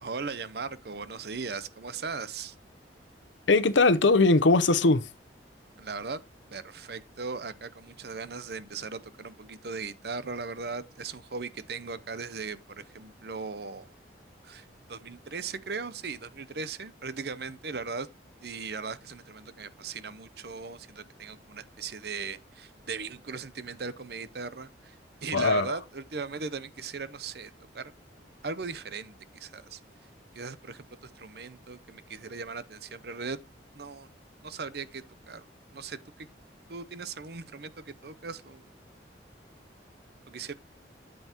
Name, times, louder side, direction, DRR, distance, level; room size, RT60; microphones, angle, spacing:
voice 1, 0.0-2.5 5.8-6.2 6.5-13.9 14.4-18.1 18.4-27.9 28.4-29.8 30.3-33.4 33.7-34.1 34.4-35.5 35.7-36.3 36.7-38.7 40.3-40.5, right 4 dB, 60° right, 0.7 m, -38 dB
voice 2, 3.5-5.0 25.3-25.7, left 3 dB, 85° left, 0.8 m, -20 dB
9.0 x 7.9 x 3.0 m
head